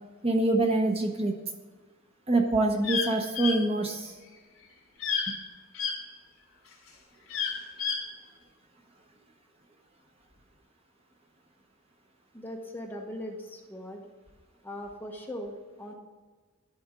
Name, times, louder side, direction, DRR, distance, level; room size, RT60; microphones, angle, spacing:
voice 1, 0.2-1.3 2.3-4.1 5.3-5.4, right 2 dB, 30° right, 3 dB, 0.9 m, -25 dB
sound 1, 2.8-3.1 3.3-3.5 5.0-5.3 5.7-5.9 7.3-8.0, left 6 dB, 75° left, 2.9 m, -29 dB
voice 2, 12.3-14.1 14.6-15.9, left 1 dB, 10° left, 1 dB, 1.0 m, -40 dB
11.5 x 4.3 x 5.1 m, 1.3 s
head